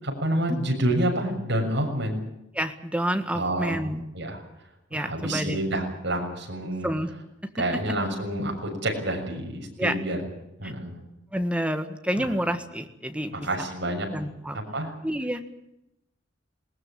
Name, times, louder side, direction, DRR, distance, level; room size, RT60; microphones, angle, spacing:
voice 1, 0.0-2.2 3.3-3.7 4.1-4.4 4.9-6.9 7.6-10.2 10.6-11.0 12.2-12.3 13.3-14.1 14.7-14.9, right 1 dB, 65° right, 1 dB, 6.8 m, -28 dB
voice 2, 2.5-4.1 4.9-5.6 6.8-7.1 7.6-7.8 9.8-10.0 10.6-10.7 11.3-13.5 13.9-14.6 15.0-15.4, equal, 5° right, 8 dB, 1.7 m, -29 dB
20.5 x 19.0 x 8.8 m, 0.86 s
head